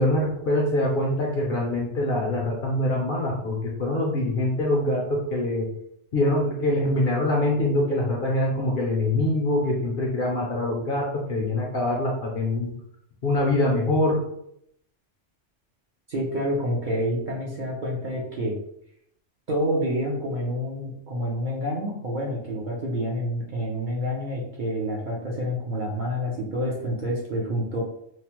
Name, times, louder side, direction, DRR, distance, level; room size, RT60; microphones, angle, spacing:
voice 1, 0.0-5.7 6.1-12.7 13.2-14.2, left 1 dB, 60° left, -2 dB, 0.6 m, -24 dB
voice 2, 16.1-18.6 19.5-27.8, equal, 50° right, -3 dB, 0.6 m, -28 dB
3.0 x 2.0 x 2.9 m, 0.73 s
omnidirectional pair, 1.3 m